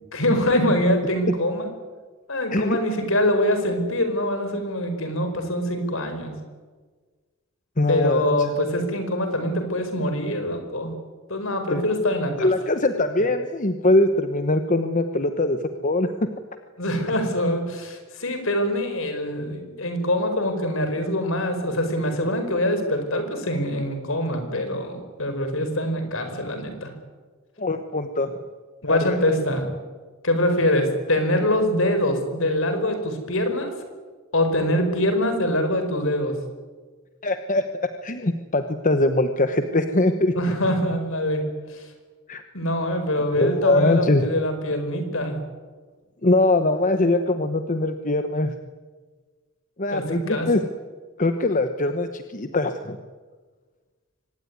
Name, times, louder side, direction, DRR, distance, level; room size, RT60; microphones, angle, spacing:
voice 1, 0.0-1.7 2.3-6.3 7.9-10.9 11.3-12.5 16.8-26.9 28.8-29.7 30.2-33.7 34.3-36.3 40.3-41.4 41.7-41.9 42.5-45.4 49.9-50.5, left 1 dB, 65° left, 7 dB, 5.0 m, -24 dB
voice 2, 7.8-8.5 11.7-11.9 12.4-16.1 27.6-28.5 28.9-29.2 37.2-37.6 38.0-40.3 42.3-42.4 43.3-44.2 46.2-48.5 49.8-50.6 51.2-53.0, left 2 dB, 35° left, 8 dB, 1.1 m, -22 dB
24.5 x 19.5 x 9.6 m, 1.4 s
head